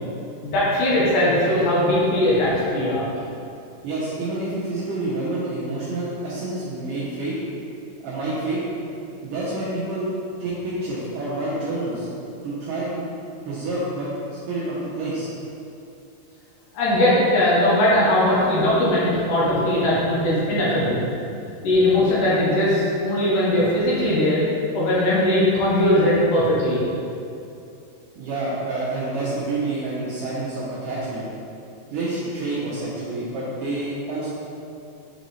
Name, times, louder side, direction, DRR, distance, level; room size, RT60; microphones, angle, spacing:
voice 1, 0.4-3.0 16.7-21.0 21.6-24.4 24.7-26.8, left 1 dB, 80° left, -7 dB, 1.8 m, -19 dB
voice 2, 3.8-7.4 8.0-8.6 9.2-10.1 10.4-12.1 12.4-13.0 13.4-15.3 28.2-31.3 31.9-34.3, right 2 dB, 90° right, -9 dB, 1.8 m, -28 dB
7.6 x 4.0 x 3.2 m, 2.6 s
omnidirectional pair, 4.9 m